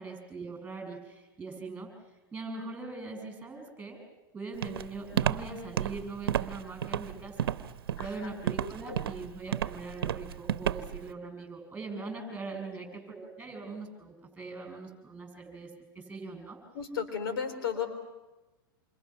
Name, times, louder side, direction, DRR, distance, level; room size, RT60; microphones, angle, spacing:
voice 1, 0.0-4.0 4.3-7.5 8.0-16.6, right 3 dB, 10° right, 5 dB, 7.2 m, -41 dB
Walk footsteps, 4.6-11.1, right 10 dB, 85° right, 0.9 m, -31 dB
voice 2, 8.6-9.0 16.7-17.9, left 7 dB, 80° left, 8 dB, 4.1 m, -34 dB
28.5 x 27.5 x 6.0 m, 1.1 s
hypercardioid pair, 120°, 12 cm